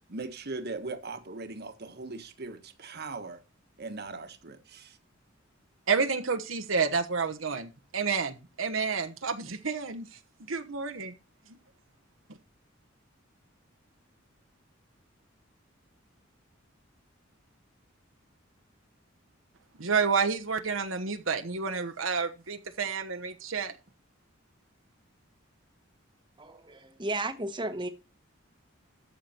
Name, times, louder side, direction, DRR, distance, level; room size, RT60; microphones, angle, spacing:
voice 1, 0.1-3.4 3.8-5.0, right 3 dB, 55° right, 1.5 m, -39 dB
voice 2, 5.9-10.1 10.5-11.1 19.8-23.7, right 5 dB, 80° right, 1.1 m, -29 dB
voice 3, 26.4-27.9, right 2 dB, 25° right, 1.1 m, -34 dB
13.5 x 6.8 x 4.4 m
head